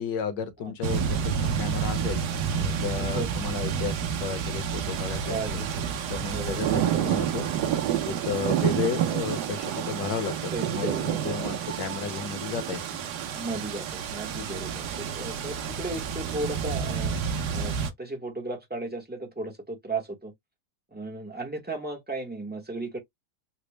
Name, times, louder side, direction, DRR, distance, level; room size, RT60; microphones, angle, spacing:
voice 1, 0.0-5.6 6.1-7.5 8.0-13.0, left 7 dB, 65° left, 1.5 m, -33 dB
sound 1, 0.8-17.9, right 8 dB, 65° right, 1.1 m, -29 dB
voice 2, 5.3-5.6 6.3-6.6 10.5-11.1 11.4-11.6 13.4-17.2 17.5-20.3 20.9-23.0, right 2 dB, 10° right, 0.4 m, -35 dB
4.1 x 2.1 x 3.1 m
omnidirectional pair, 2.1 m